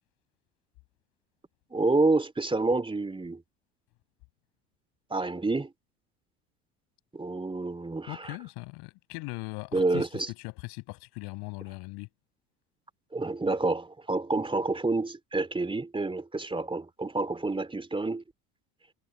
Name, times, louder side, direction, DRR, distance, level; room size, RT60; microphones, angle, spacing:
voice 1, 1.7-3.4 5.1-5.7 7.1-8.4 9.7-10.3 13.1-18.2, right 3 dB, 10° right, 3.0 m, -28 dB
voice 2, 8.1-12.1, left 26 dB, 60° left, 6.7 m, -39 dB
figure-of-eight pair, 65°, 44 cm